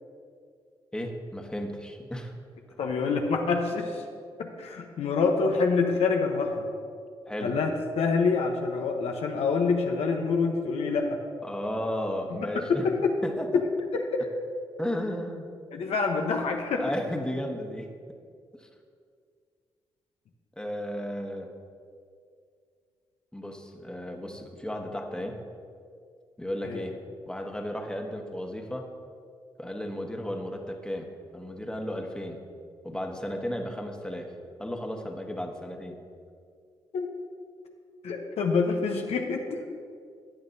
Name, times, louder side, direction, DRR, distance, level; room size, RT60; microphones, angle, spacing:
voice 1, 0.9-2.3 2.7-2.8 7.3-7.5 11.4-12.9 13.2-13.6 14.8-15.5 16.7-17.9 18.6-18.7 20.6-21.5 23.3-25.4 26.4-28.9 29.6-32.4 32.8-34.3 34.6-36.0, equal, 10° left, 3 dB, 1.3 m, -34 dB
voice 2, 2.8-4.0 4.4-6.7 7.4-11.2 12.5-13.1 13.5-13.6 13.9-14.3 15.7-16.8 26.6-26.8 36.9-37.1 38.0-39.6, left 4 dB, 75° left, 3 dB, 0.9 m, -26 dB
14.0 x 8.8 x 2.7 m, 2.2 s
supercardioid pair, 50°, 11 cm